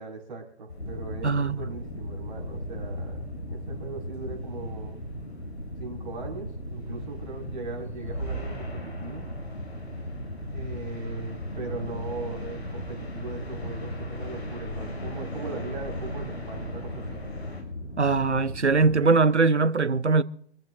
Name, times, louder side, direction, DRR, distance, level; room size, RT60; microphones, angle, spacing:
voice 1, 0.0-5.0 5.8-9.2 10.5-17.2, right 4 dB, 45° right, 4.9 m, -39 dB
sound 1, 0.7-17.6, left 1 dB, 70° left, 5.6 m, -40 dB
sound 2, 0.8-19.0, equal, 90° left, 2.0 m, -38 dB
voice 2, 1.2-1.6 18.0-20.2, right 4 dB, 85° right, 0.8 m, -21 dB
26.0 x 14.5 x 2.5 m
figure-of-eight pair, 130°, 33 cm